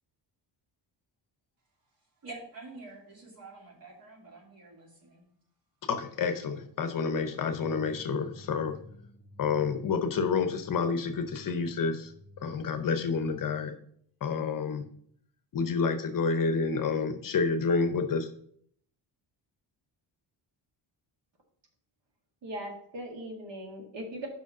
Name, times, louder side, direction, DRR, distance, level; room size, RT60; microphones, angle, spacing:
voice 1, 2.2-5.2, right 3 dB, 50° right, -1 dB, 2.4 m, -47 dB
voice 2, 5.9-8.8 9.4-12.1 12.4-13.7 14.2-14.8 15.5-18.3, left 5 dB, 45° left, 8 dB, 0.7 m, -29 dB
sound 1, 7.5-13.7, left 2 dB, 25° left, 0.3 m, -52 dB
voice 3, 22.4-24.3, right 1 dB, 70° right, 2 dB, 1.9 m, -39 dB
5.6 x 5.0 x 5.9 m, 0.64 s
wide cardioid pair, 170°, 45 cm